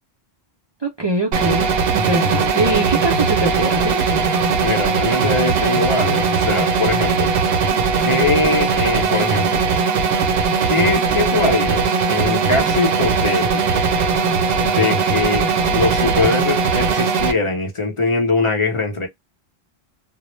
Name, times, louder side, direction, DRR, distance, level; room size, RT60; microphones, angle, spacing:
voice 1, 0.8-4.3, right 2 dB, 45° right, 0.3 m, -23 dB
sound 1, 1.3-17.3, right 5 dB, 70° right, 0.7 m, -19 dB
voice 2, 4.6-7.3 8.0-9.7 10.7-13.9 14.6-19.1, left 3 dB, 35° left, 0.6 m, -22 dB
2.0 x 2.0 x 2.9 m
omnidirectional pair, 1.1 m